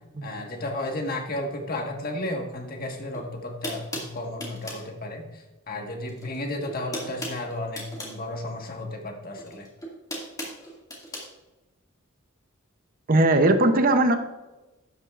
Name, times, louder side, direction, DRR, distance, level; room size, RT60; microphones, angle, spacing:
voice 1, 0.2-9.7, left 1 dB, 45° left, 2 dB, 1.6 m, -33 dB
sound 1, 3.1-3.2 3.6-4.9 6.1-6.4 6.6-8.2 9.4-11.3, equal, 15° left, 2.2 m, -36 dB
voice 2, 13.1-14.2, right 2 dB, 45° right, 8 dB, 0.7 m, -19 dB
12.0 x 9.0 x 2.5 m, 1.1 s
head